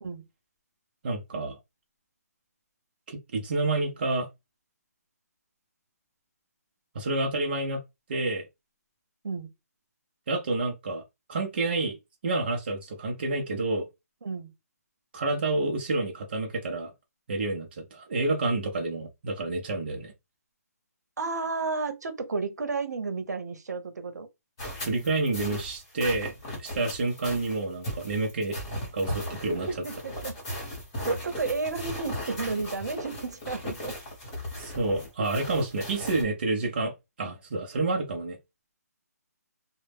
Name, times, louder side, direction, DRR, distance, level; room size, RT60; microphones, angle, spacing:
voice 1, 1.0-1.6 3.1-4.3 6.9-7.8 8.1-8.5 10.3-11.0 11.3-12.0 12.2-13.9 15.1-16.9 17.3-20.1 24.9-26.3 26.6-28.6 28.9-29.7 34.6-36.9 37.2-38.4, right 2 dB, 35° right, 0.5 m, -29 dB
voice 2, 14.2-14.5 21.2-24.3 29.5-30.4 31.1-34.0, right 4 dB, 85° right, 0.7 m, -32 dB
sound 1, 24.6-36.2, equal, 20° left, 0.9 m, -37 dB
2.1 x 2.0 x 3.3 m
hypercardioid pair, 170°, 9 cm